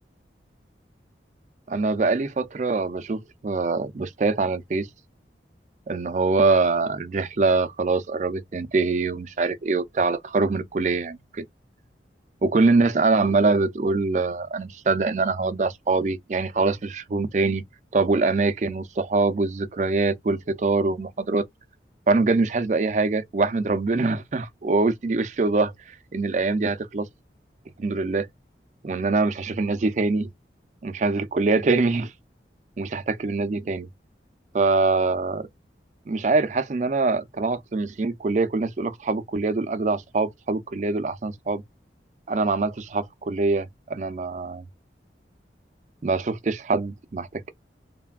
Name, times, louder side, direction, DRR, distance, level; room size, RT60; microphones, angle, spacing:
voice 1, 1.7-4.9 5.9-11.4 12.4-17.6 17.9-21.5 22.1-25.7 26.1-27.1 27.8-28.3 28.8-30.3 30.8-32.1 32.8-33.9 34.5-35.5 36.1-41.6 42.3-44.6 46.0-47.5, right 3 dB, 40° right, 0.4 m, -24 dB
3.2 x 2.1 x 2.3 m
head